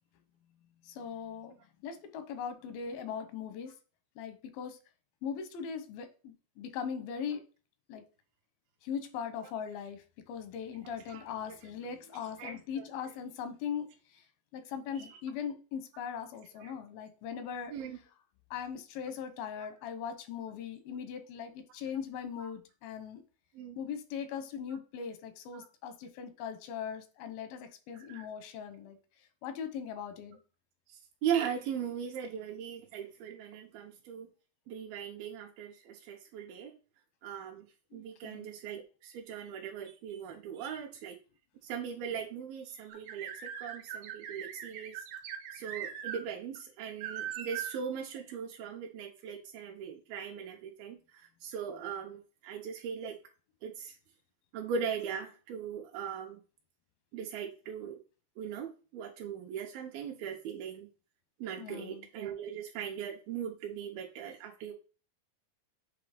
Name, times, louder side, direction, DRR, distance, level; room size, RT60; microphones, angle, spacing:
voice 1, 0.9-1.6 1.8-3.7 4.2-4.8 5.2-7.4 7.9-8.0 8.8-14.2 14.5-17.7 18.5-23.2 23.8-29.0 29.4-30.4 37.9-38.6 61.6-62.1, left 7 dB, 90° left, 9 dB, 2.7 m, -40 dB
voice 2, 10.8-11.6 12.4-12.9 14.9-15.2 16.6-16.8 17.7-18.0 19.6-19.7 22.4-22.5 23.5-23.8 25.5-25.7 27.9-28.3 30.9-34.3 34.7-36.7 37.2-37.6 37.9-41.2 41.6-45.0 45.5-53.2 53.6-54.0 54.5-56.4 57.1-58.0 58.4-60.9 61.4-64.7, right 7 dB, 85° right, 1 dB, 2.7 m, -39 dB
sound 1, 42.9-46.2 46.6-46.7 47.0-47.8, right 9 dB, 70° right, 1.6 m, -40 dB
7.7 x 2.9 x 5.0 m, 0.35 s
omnidirectional pair, 4.1 m